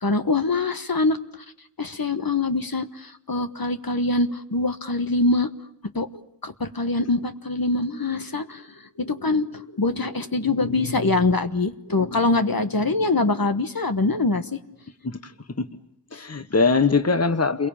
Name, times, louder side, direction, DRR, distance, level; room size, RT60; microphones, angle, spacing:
voice 1, 0.0-1.4 1.8-5.5 5.9-6.1 6.4-8.7 9.0-14.5 16.1-16.2, left 3 dB, 55° left, 8 dB, 1.3 m, -24 dB
voice 2, 16.1-17.7, left 4 dB, 35° left, 10 dB, 1.2 m, -21 dB
29.0 x 22.5 x 8.8 m, 0.79 s
wide cardioid pair, 60°, 43 cm